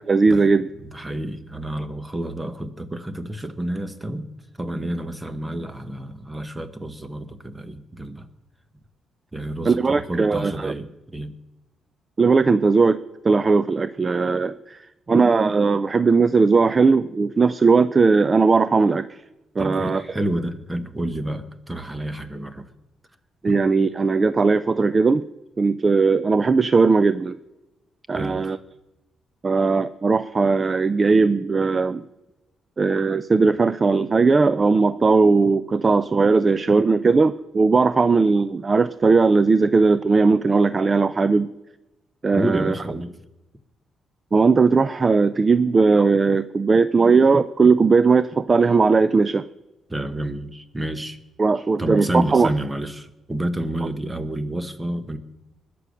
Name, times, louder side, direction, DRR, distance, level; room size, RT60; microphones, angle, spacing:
voice 1, 0.1-0.7 9.7-10.7 12.2-13.0 13.2-19.2 19.6-20.0 23.4-25.2 25.6-27.4 28.1-28.6 29.4-32.0 32.8-41.5 42.2-42.7 44.3-49.4 51.4-52.5, right 4 dB, 30° right, 15 dB, 0.4 m, -18 dB
voice 2, 0.8-4.3 4.6-8.3 9.3-11.3 19.6-22.7 23.5-23.6 28.1-28.5 42.3-43.2 49.9-51.2 51.8-55.2, right 1 dB, 10° right, 11 dB, 1.1 m, -29 dB
20.5 x 6.9 x 6.4 m, 1.0 s
cardioid pair, 115°, 0 cm